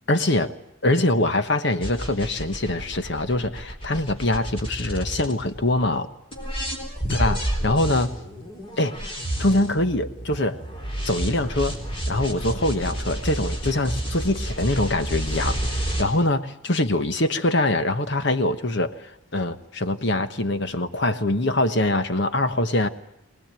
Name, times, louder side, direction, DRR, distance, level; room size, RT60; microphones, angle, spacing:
voice 1, 0.1-0.5 0.8-6.1 7.1-8.1 8.8-9.0 9.4-10.6 11.0-11.8 12.1-22.9, left 1 dB, 60° left, 10 dB, 1.3 m, -23 dB
sound 1, 1.8-5.9 6.3-16.0, right 1 dB, 25° left, 4.3 m, -30 dB
24.5 x 19.0 x 9.1 m, 0.80 s
head